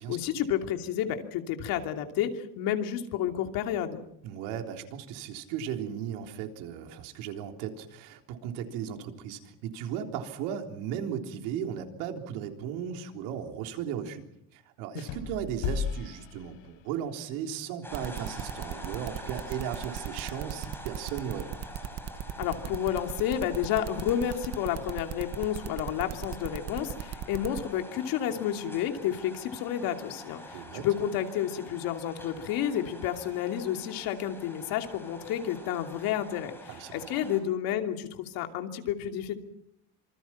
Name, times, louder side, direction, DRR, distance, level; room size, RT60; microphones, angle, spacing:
voice 1, 0.0-4.0 22.4-39.3, left 10 dB, 55° left, 5 dB, 2.9 m, -31 dB
voice 2, 4.2-14.3 14.5-21.6 30.5-30.8 36.7-37.1, right 9 dB, 75° right, 4 dB, 3.8 m, -36 dB
sound 1, 14.9-17.1, left 7 dB, 85° left, 4.8 m, -35 dB
sound 2, 17.8-37.4, left 1 dB, 5° left, 5.6 m, -46 dB
sound 3, 17.9-27.6, right 11 dB, 40° right, 1.2 m, -37 dB
27.0 x 25.5 x 5.9 m, 0.74 s
cardioid pair, 170°, 41 cm